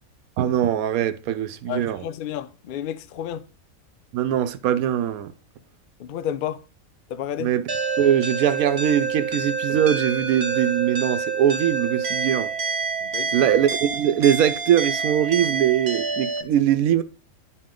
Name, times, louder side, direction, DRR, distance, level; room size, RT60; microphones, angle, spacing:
voice 1, 0.4-2.0 4.1-5.3 7.4-7.6 8.0-12.5 13.3-17.0, right 10 dB, 80° right, 1.1 m, -21 dB
voice 2, 1.7-3.5 6.0-6.6 7.1-7.5 13.0-13.5, left 10 dB, 70° left, 0.5 m, -31 dB
sound 1, 7.7-16.4, right 4 dB, 50° right, 1.1 m, -27 dB
11.0 x 4.2 x 3.8 m
omnidirectional pair, 1.5 m